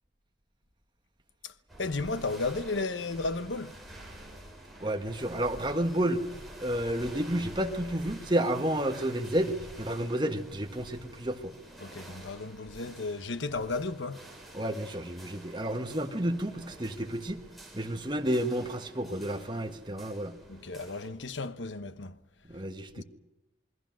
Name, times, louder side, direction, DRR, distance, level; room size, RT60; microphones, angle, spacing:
sound 1, 1.7-21.1, right 1 dB, ahead, 6.2 m, -49 dB
voice 1, 1.8-3.7 11.8-14.2 20.5-22.2 23.0-23.1, left 3 dB, 85° left, 1.1 m, -34 dB
voice 2, 4.8-6.2 6.6-11.5 14.5-17.4 17.7-20.3 22.5-23.0, right 1 dB, 25° right, 1.6 m, -31 dB
27.0 x 22.0 x 6.3 m
head